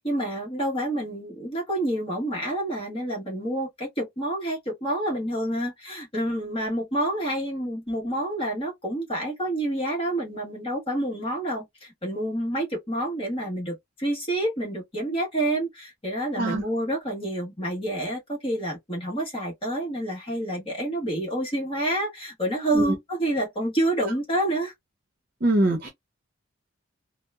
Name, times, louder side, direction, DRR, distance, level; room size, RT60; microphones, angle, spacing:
voice 1, 0.0-24.7, right 1 dB, 25° left, 1.2 m, -28 dB
voice 2, 25.4-25.9, right 1 dB, 45° right, 0.7 m, -22 dB
2.8 x 2.1 x 2.2 m
head